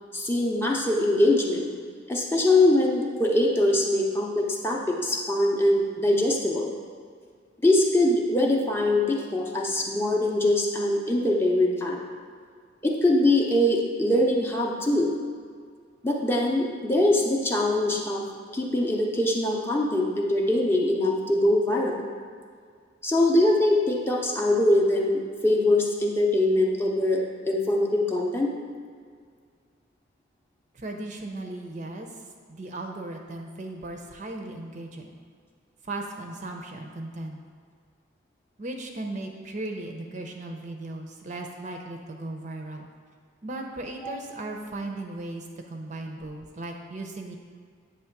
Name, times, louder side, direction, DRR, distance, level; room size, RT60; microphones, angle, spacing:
voice 1, 0.1-1.7 2.1-6.7 7.6-12.0 12.8-15.1 16.0-18.2 18.5-22.0 23.0-27.2 27.5-28.5 44.0-44.1, left 1 dB, 10° left, -1 dB, 0.6 m, -23 dB
voice 2, 30.7-32.1 32.5-35.2 35.9-37.4 38.6-42.9 43.4-47.3, right 2 dB, 40° right, 2 dB, 0.6 m, -37 dB
8.3 x 3.0 x 5.8 m, 2.1 s
head